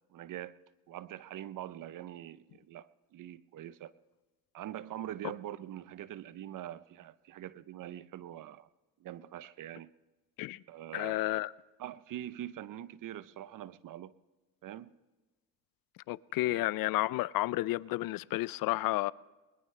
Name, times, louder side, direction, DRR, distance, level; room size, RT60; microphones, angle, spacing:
voice 1, 0.1-0.6 0.9-3.9 4.5-8.7 9.0-9.9 10.7-11.2 11.8-14.1 14.6-14.9 16.4-16.6, right 12 dB, 60° right, 0.8 m, -44 dB
voice 2, 10.9-11.5 16.1-19.1, left 18 dB, 70° left, 0.5 m, -31 dB
21.0 x 20.5 x 3.3 m
supercardioid pair, 80°, 36 cm